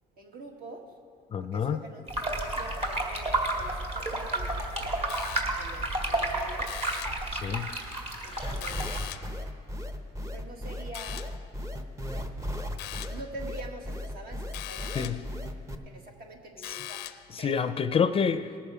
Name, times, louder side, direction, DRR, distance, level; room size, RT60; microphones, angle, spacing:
voice 1, 0.2-0.8 1.5-5.0 5.6-6.9 8.2-8.9 10.3-11.3 13.1-15.2 15.8-17.0 17.4-17.6, right 2 dB, 60° right, 2 dB, 1.8 m, -45 dB
voice 2, 1.3-1.8 7.3-7.7 8.3-8.6 15.0-15.2 17.4-18.5, left 6 dB, 35° left, 11 dB, 0.4 m, -28 dB
sound 1, 2.1-9.0, right 2 dB, 35° right, 1.9 m, -31 dB
sound 2, 5.1-5.8 6.6-7.3 8.6-9.4 10.9-11.5 12.8-13.3 14.5-15.3 16.6-17.4, left 14 dB, 90° left, 0.5 m, -41 dB
sound 3, 8.4-15.7, left 1 dB, 20° right, 0.8 m, -35 dB
19.0 x 6.8 x 4.9 m, 2.3 s
cardioid pair, 110°, 17 cm